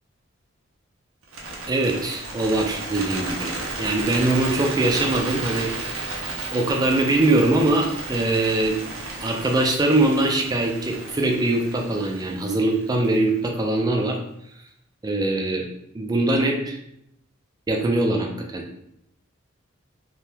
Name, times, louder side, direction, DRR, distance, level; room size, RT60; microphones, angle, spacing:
Bird, 1.2-13.4, right 3 dB, 85° right, 0.6 m, -33 dB
voice 1, 1.7-3.5 3.8-6.0 6.5-8.8 9.2-14.2 15.0-15.7 15.9-16.8 17.7-18.6, right 2 dB, 20° right, 1 dB, 0.3 m, -22 dB
3.2 x 2.2 x 2.8 m, 0.77 s
head